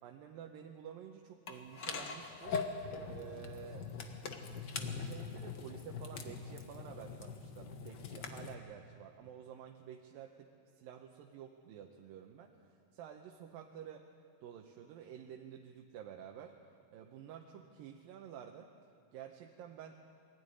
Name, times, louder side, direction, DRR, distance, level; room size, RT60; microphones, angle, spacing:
voice 1, 0.0-2.6 3.0-3.9 4.7-14.1 14.4-16.6 16.9-18.7 19.1-20.0, right 9 dB, 80° right, 3 dB, 2.7 m, -50 dB
sound 1, 1.5-8.5, left 5 dB, 65° left, 1.0 m, -42 dB
22.5 x 16.0 x 9.8 m, 2.3 s
omnidirectional pair, 4.1 m